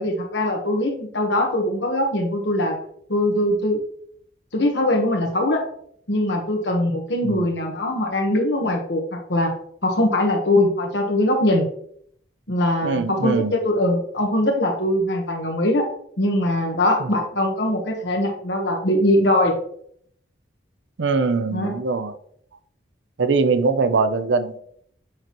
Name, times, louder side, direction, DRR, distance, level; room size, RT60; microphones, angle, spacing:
voice 1, 0.0-2.8 3.1-3.8 4.5-5.6 6.1-9.0 9.3-9.5 9.8-11.7 12.5-15.9 16.2-19.5 21.5-21.8, left 1 dB, 65° left, 2 dB, 1.2 m, -21 dB
voice 2, 12.8-13.5 21.0-22.1 23.2-24.6, right 4 dB, 70° right, 10 dB, 0.6 m, -22 dB
7.6 x 5.9 x 3.0 m, 0.64 s
head